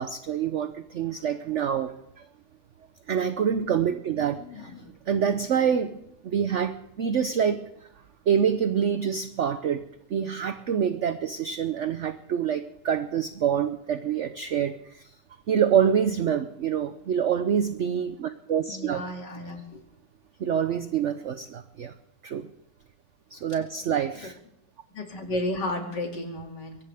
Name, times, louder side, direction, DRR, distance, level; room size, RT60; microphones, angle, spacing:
voice 1, 0.0-1.9 2.2-2.3 3.1-4.7 5.1-7.7 8.3-9.8 10.1-15.1 15.5-19.0 20.4-21.9 22.2-22.5 23.3-24.4, right 8 dB, 55° right, 10 dB, 0.8 m, -26 dB
voice 2, 4.4-4.8 18.7-19.8 24.9-26.8, left 1 dB, 75° left, 1 dB, 3.2 m, -33 dB
22.5 x 18.0 x 3.5 m, 0.76 s
omnidirectional pair, 1.9 m